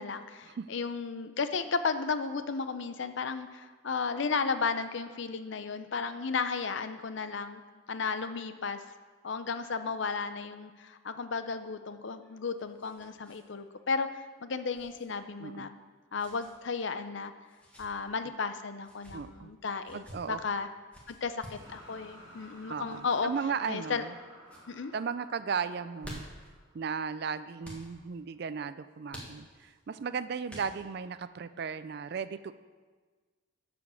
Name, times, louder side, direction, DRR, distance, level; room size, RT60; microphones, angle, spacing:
voice 1, 0.0-7.6 7.9-8.8 9.2-15.8 16.1-17.3 17.8-20.7 21.1-23.3 23.7-24.0 24.7-24.9, left 5 dB, 60° left, 10 dB, 0.6 m, -34 dB
sound 1, 12.1-13.4 13.7-13.8 14.7-15.0 16.2-16.5 17.4-17.9 18.8-19.2 19.8-20.2 20.9-21.7 22.9-23.2 23.8-24.2 24.4-24.7 25.7-26.5 27.6-27.9 29.1-29.7 30.5-31.0, equal, 5° left, 1.5 m, -49 dB
voice 2, 19.1-19.5 19.9-20.4 22.7-24.1 24.9-26.3 26.7-32.5, right 6 dB, 50° right, 13 dB, 0.3 m, -36 dB
sound 2, 21.6-27.6, equal, 25° right, 2.3 m, -54 dB
11.0 x 5.1 x 6.9 m, 1.4 s
head